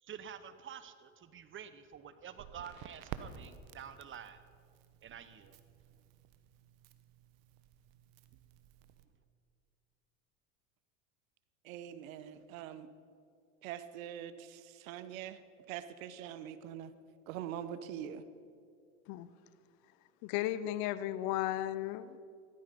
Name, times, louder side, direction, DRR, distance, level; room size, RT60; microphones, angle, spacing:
voice 1, 0.0-4.4 5.0-5.6, right 8 dB, 30° right, 12 dB, 1.0 m, -49 dB
Crackle, 2.3-9.0, right 9 dB, 55° right, 1.2 m, -52 dB
voice 2, 11.6-12.9 13.6-15.4 15.7-16.9 17.3-18.2, right 10 dB, 75° right, 13 dB, 1.1 m, -43 dB
voice 3, 20.2-22.2, left 14 dB, 55° left, 15 dB, 0.8 m, -35 dB
16.0 x 14.0 x 5.3 m, 2.3 s
hypercardioid pair, 100°, 41 cm